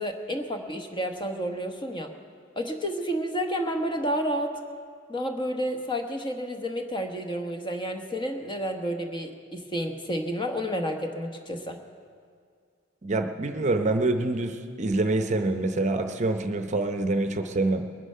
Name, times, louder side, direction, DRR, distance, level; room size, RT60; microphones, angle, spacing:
voice 1, 0.0-2.1 2.6-4.6 5.1-11.8, equal, 25° left, 5 dB, 1.1 m, -30 dB
voice 2, 13.0-18.0, right 2 dB, 35° right, 7 dB, 0.7 m, -26 dB
21.0 x 10.0 x 5.6 m, 2.1 s
head